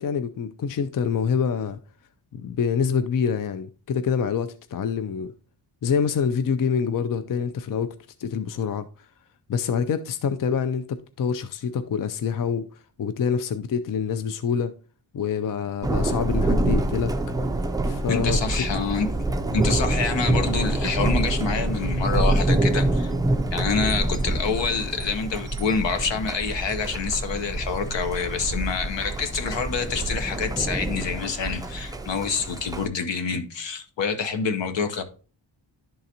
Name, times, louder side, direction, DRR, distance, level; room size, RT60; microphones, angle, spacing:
voice 1, 0.0-1.8 2.3-5.3 5.8-8.9 9.5-12.7 13.0-14.7 15.1-17.1 17.9-18.4 20.3-20.4, left 6 dB, 50° left, 0.5 m, -26 dB
Thunder, 15.8-32.9, right 2 dB, 10° right, 0.3 m, -26 dB
voice 2, 18.1-19.1 19.5-23.1 23.5-35.0, left 5 dB, 75° left, 0.9 m, -27 dB
11.0 x 3.9 x 2.8 m
wide cardioid pair, 115°, 45 cm